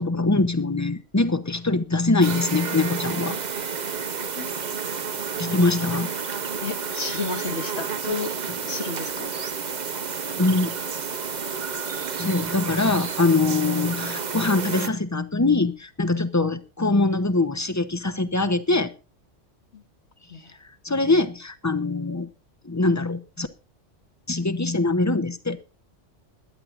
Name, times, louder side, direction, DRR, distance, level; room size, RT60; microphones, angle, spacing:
voice 1, 0.0-3.4 5.4-6.1 10.4-10.7 12.2-18.9 20.8-22.3 22.6-23.5 24.3-25.6, left 3 dB, 15° left, 0.8 m, -23 dB
sound 1, 2.2-14.9, right 6 dB, 40° right, 0.9 m, -30 dB
voice 2, 6.6-8.3 8.6-9.3 19.7-19.8 20.3-20.6, left 4 dB, 60° left, 1.9 m, -32 dB
21.5 x 10.5 x 2.5 m
omnidirectional pair, 1.2 m